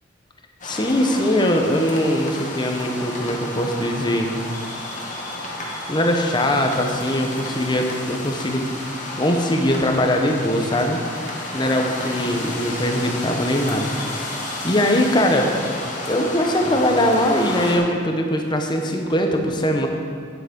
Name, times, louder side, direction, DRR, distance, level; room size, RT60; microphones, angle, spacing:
sound 1, 0.6-17.8, left 2 dB, 40° left, 1.5 m, -31 dB
voice 1, 0.6-4.3 5.9-8.7 9.2-14.3 14.6-15.5 16.1-19.9, equal, 25° left, 3 dB, 0.9 m, -21 dB
9.3 x 7.9 x 5.2 m, 2.1 s
head